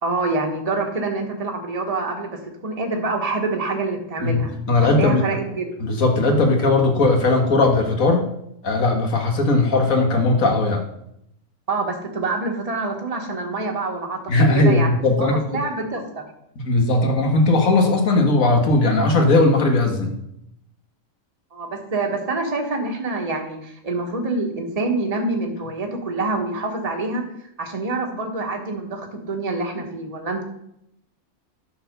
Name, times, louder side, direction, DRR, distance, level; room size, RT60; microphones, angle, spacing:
voice 1, 0.0-4.5 5.0-5.7 11.7-14.9 15.2-16.2 21.5-27.3 27.6-30.4, right 3 dB, 30° right, 2 dB, 1.4 m, -26 dB
voice 2, 4.2-5.2 5.8-8.3 8.6-10.8 14.3-15.4 16.6-20.1, left 2 dB, 85° left, 2 dB, 2.0 m, -18 dB
11.0 x 4.4 x 6.7 m, 0.77 s
omnidirectional pair, 1.4 m